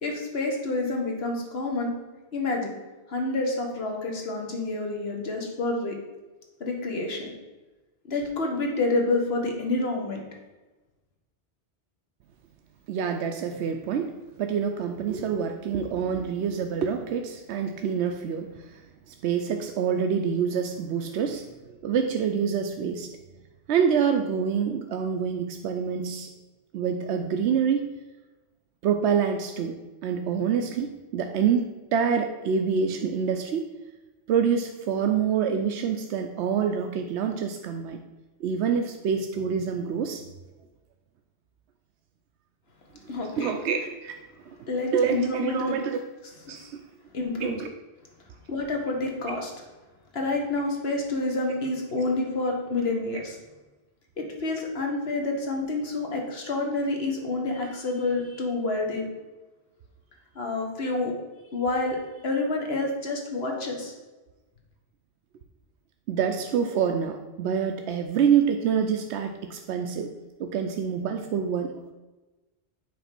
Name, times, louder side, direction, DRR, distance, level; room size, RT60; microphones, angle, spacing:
voice 1, 0.0-1.9 2.3-2.7 3.1-6.0 6.6-7.3 8.1-10.2 43.1-43.5 44.7-45.7 47.1-47.6 48.5-49.5 50.1-53.4 54.2-59.1 60.3-61.1 61.5-62.0 62.2-63.9, left 2 dB, 70° left, 1 dB, 1.6 m, -28 dB
voice 2, 12.9-14.1 14.4-18.8 19.1-21.4 21.7-23.1 23.7-26.3 26.7-27.8 28.8-29.8 30.0-33.7 34.3-38.0 38.4-40.2 43.1-44.2 44.9-46.0 46.5-46.8 47.4-47.7 66.1-70.1 70.4-71.9, right 7 dB, 90° right, 5 dB, 0.9 m, -26 dB
8.5 x 3.4 x 5.9 m, 1.2 s
omnidirectional pair, 1.1 m